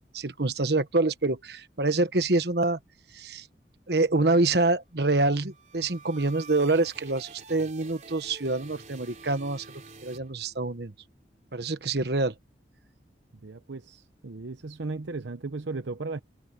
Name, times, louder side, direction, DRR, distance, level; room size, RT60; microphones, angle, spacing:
voice 1, 0.0-2.8 3.1-3.5 3.9-10.9 11.5-12.3, right 2 dB, 65° right, 1.3 m, -26 dB
sound 1, 5.3-10.9, right 4 dB, 40° right, 4.2 m, -48 dB
voice 2, 13.4-16.2, right 3 dB, 85° right, 0.8 m, -36 dB
head